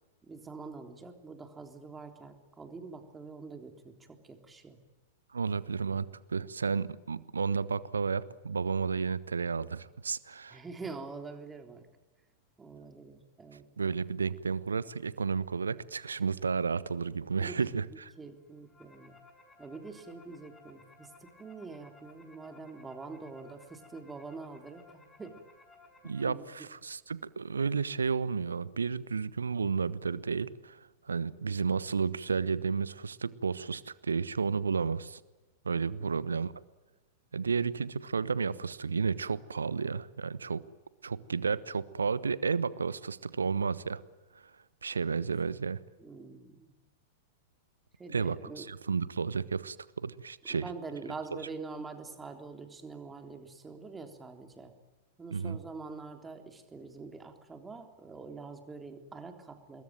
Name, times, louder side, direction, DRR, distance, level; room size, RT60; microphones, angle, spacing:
voice 1, 0.2-4.8 10.5-11.9 12.6-13.6 17.4-17.5 18.2-19.2 19.6-25.4 26.0-26.4 46.0-46.8 48.0-48.7 50.5-54.7 55.2-59.8, right 4 dB, 15° right, 6 dB, 3.5 m, -45 dB
voice 2, 5.3-10.6 13.8-18.1 26.0-35.2 35.6-36.5 37.3-40.6 41.0-44.0 44.8-45.8 48.1-50.7 51.3-51.4 55.3-55.6, right 5 dB, 75° right, 18 dB, 1.1 m, -32 dB
sound 1, 18.4-26.2, left 3 dB, 15° left, 6.7 m, -58 dB
27.0 x 21.5 x 9.2 m, 1.2 s
figure-of-eight pair, 95°, 0 cm